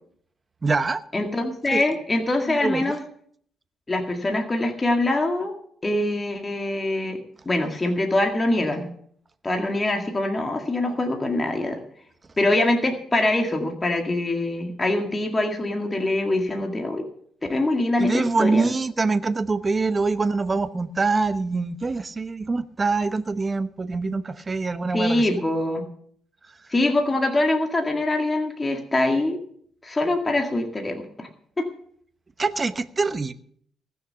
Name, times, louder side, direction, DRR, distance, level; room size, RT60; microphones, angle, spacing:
voice 1, 0.6-1.0 1.7-1.8 2.6-3.0 18.0-25.3 26.5-26.6 32.4-33.3, right 3 dB, 30° right, 12 dB, 0.9 m, -24 dB
voice 2, 1.1-3.0 3.9-5.5 5.8-7.2 7.5-8.9 9.4-11.8 12.4-17.0 17.5-18.7 24.9-25.8 26.7-29.4 29.8-31.3 31.6-31.7, left 2 dB, 25° left, 3 dB, 2.0 m, -24 dB
19.0 x 6.6 x 6.8 m, 0.64 s
cardioid pair, 90°, 0 cm